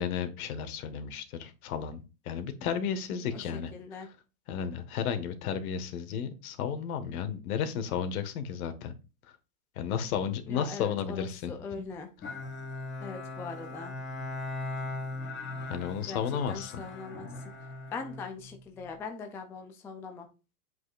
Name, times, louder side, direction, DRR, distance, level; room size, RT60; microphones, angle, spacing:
voice 1, 0.0-2.0 2.2-3.7 4.0-4.1 4.5-8.9 9.8-11.8 15.6-16.8, left 8 dB, 65° left, 9 dB, 1.6 m, -33 dB
voice 2, 3.3-4.1 10.5-12.1 13.0-13.9 16.1-16.2 16.5-17.3 17.9-20.3, left 4 dB, 5° left, 5 dB, 0.3 m, -41 dB
Bowed string instrument, 12.2-18.9, left 2 dB, 25° left, 2.2 m, -39 dB
8.0 x 7.9 x 2.5 m, 0.30 s
hypercardioid pair, 125°, 47 cm